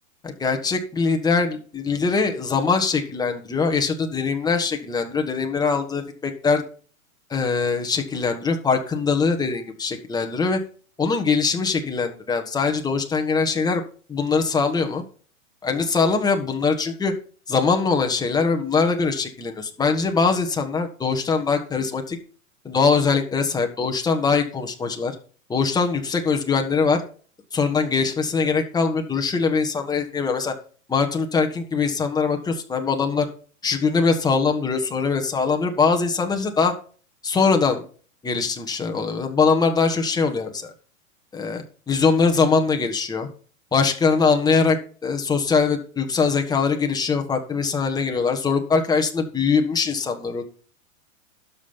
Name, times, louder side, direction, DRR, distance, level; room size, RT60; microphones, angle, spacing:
voice 1, 0.2-6.6 7.3-10.6 11.0-13.8 14.1-15.0 15.6-17.1 17.5-22.2 22.6-25.1 25.5-27.0 27.5-30.5 30.9-33.3 33.6-36.7 37.2-37.8 38.2-40.7 41.3-43.3 43.7-50.4, left 4 dB, 10° left, 4 dB, 1.3 m, -22 dB
12.5 x 5.4 x 5.6 m, 0.41 s
hypercardioid pair, 140°, 41 cm